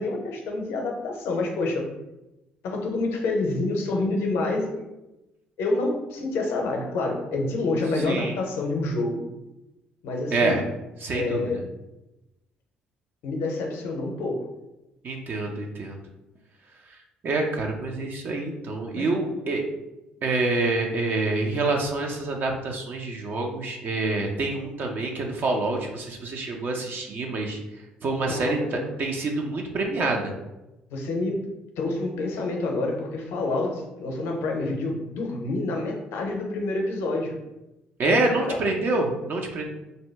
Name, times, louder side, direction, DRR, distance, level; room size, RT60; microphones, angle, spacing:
voice 1, 0.0-1.9 2.6-4.8 5.6-9.2 10.0-10.6 11.1-11.7 13.2-14.5 18.9-19.1 28.3-28.9 30.9-31.5 31.8-37.4 38.0-38.6, left 2 dB, 65° left, 1 dB, 0.6 m, -28 dB
voice 2, 8.1-8.4 10.3-10.6 11.0-11.5 15.0-16.0 17.2-19.6 20.2-27.6 28.0-30.3 38.0-39.6, right 2 dB, 50° right, 1 dB, 0.5 m, -26 dB
2.7 x 2.2 x 3.2 m, 0.96 s
hypercardioid pair, 50°, 4 cm